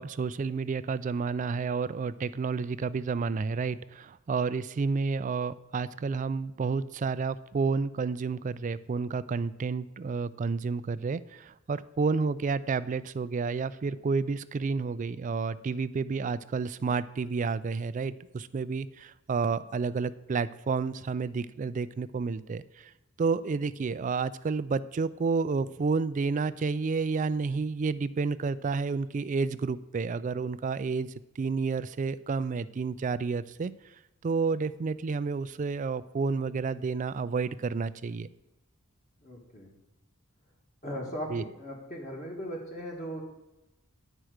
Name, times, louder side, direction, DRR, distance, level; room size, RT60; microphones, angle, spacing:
voice 1, 0.0-22.9 23.2-33.7 34.2-38.3 41.3-41.4, right 4 dB, 35° right, 15 dB, 0.3 m, -30 dB
voice 2, 39.2-39.7 40.8-43.2, equal, 35° left, -1 dB, 1.5 m, -38 dB
10.0 x 4.6 x 6.4 m, 0.99 s
head